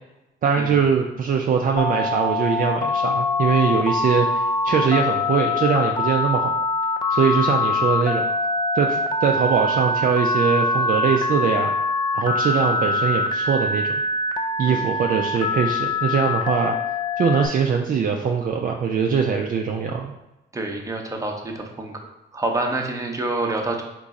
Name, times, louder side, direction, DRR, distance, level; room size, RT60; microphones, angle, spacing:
voice 1, 0.4-6.6 7.1-8.2 8.7-11.7 12.1-13.9 14.6-16.8 17.2-20.1, right 6 dB, 45° right, 2 dB, 0.4 m, -22 dB
Telephone, 1.8-17.5, left 3 dB, 20° left, 0.4 m, -23 dB
voice 2, 20.5-21.9 22.3-23.8, right 2 dB, 15° right, 2 dB, 0.7 m, -27 dB
3.9 x 3.0 x 3.6 m, 0.97 s
cardioid pair, 90°, 20 cm